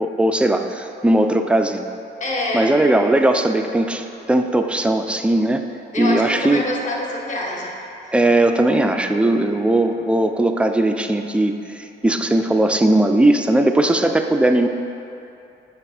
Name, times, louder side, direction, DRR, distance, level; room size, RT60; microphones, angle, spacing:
voice 1, 0.0-1.9 2.5-5.7 6.0-6.6 8.1-14.7, right 1 dB, 5° right, 6 dB, 0.3 m, -18 dB
voice 2, 2.2-2.7 5.9-7.8 8.0-8.1, left 1 dB, 40° left, -2 dB, 1.1 m, -26 dB
7.6 x 3.0 x 4.9 m, 2.8 s
cardioid pair, 90°, 20 cm